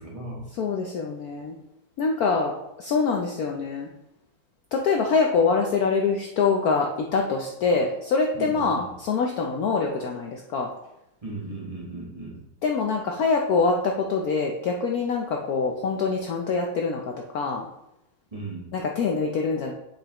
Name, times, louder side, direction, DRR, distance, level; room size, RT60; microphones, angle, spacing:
voice 1, 0.0-0.4 8.3-8.9 11.2-12.4 18.3-18.7, right 2 dB, 20° right, -5 dB, 1.0 m, -36 dB
voice 2, 0.5-1.5 2.0-3.9 4.7-10.7 12.6-17.7 18.7-19.7, left 4 dB, 70° left, 1 dB, 0.9 m, -25 dB
7.2 x 5.2 x 2.9 m, 0.86 s
omnidirectional pair, 2.1 m